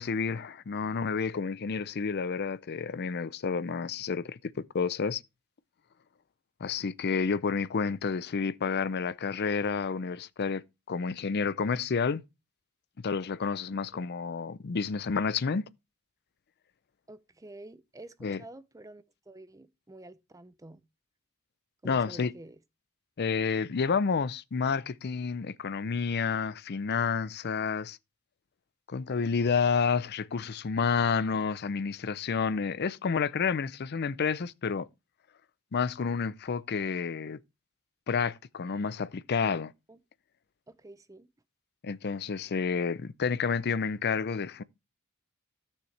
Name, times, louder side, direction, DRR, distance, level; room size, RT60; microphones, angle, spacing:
voice 1, 0.0-5.2 6.6-12.2 13.0-15.7 18.2-18.4 21.8-22.3 23.2-28.0 28.9-34.9 35.7-37.4 38.1-39.7 41.8-44.6, left 5 dB, 50° left, 0.5 m, -30 dB
voice 2, 17.1-20.8 21.8-22.6 39.9-40.0 40.7-41.3, right 2 dB, 15° right, 0.6 m, -49 dB
13.5 x 6.5 x 3.3 m
head